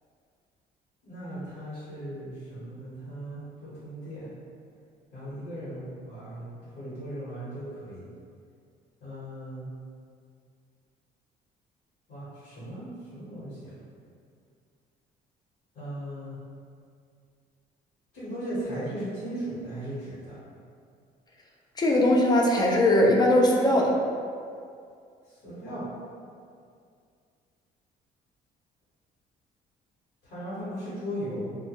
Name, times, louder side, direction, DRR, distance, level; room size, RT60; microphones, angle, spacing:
voice 1, 1.0-4.3 5.1-6.5 6.7-8.1 9.0-9.7 12.1-13.7 15.7-16.4 18.1-20.4 25.4-25.9 30.2-31.5, right 1 dB, 75° left, -13 dB, 1.1 m, -37 dB
voice 2, 21.8-23.9, left 1 dB, 25° left, -1 dB, 0.3 m, -20 dB
2.2 x 2.1 x 2.8 m, 2.3 s
cardioid pair, 110°, 17 cm